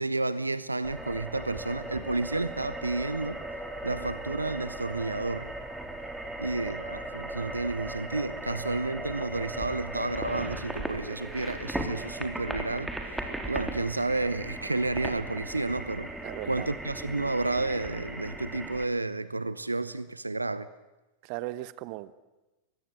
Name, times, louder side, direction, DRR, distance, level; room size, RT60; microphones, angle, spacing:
voice 1, 0.0-3.4 3.8-5.5 6.4-16.1 16.4-20.7, right 2 dB, 80° right, 16 dB, 0.7 m, -31 dB
sound 1, 0.8-18.8, right 1 dB, 5° right, 3.3 m, -37 dB
voice 2, 16.2-16.7 21.2-22.2, right 17 dB, 45° right, 17 dB, 1.0 m, -38 dB
23.5 x 21.0 x 8.1 m, 1.1 s
figure-of-eight pair, 90°, 0 cm